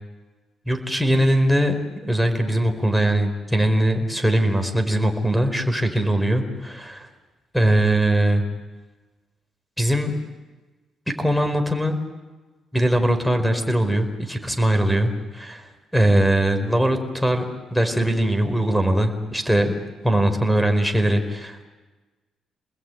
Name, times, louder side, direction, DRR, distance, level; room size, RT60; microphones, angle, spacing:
voice 1, 0.7-1.8 2.0-7.1 7.5-8.4 9.8-10.1 11.2-12.0 12.7-17.4 17.7-21.7, right 1 dB, ahead, 7 dB, 4.7 m, -21 dB
29.5 x 20.5 x 9.4 m, 1.2 s
cardioid pair, 90°, 0 cm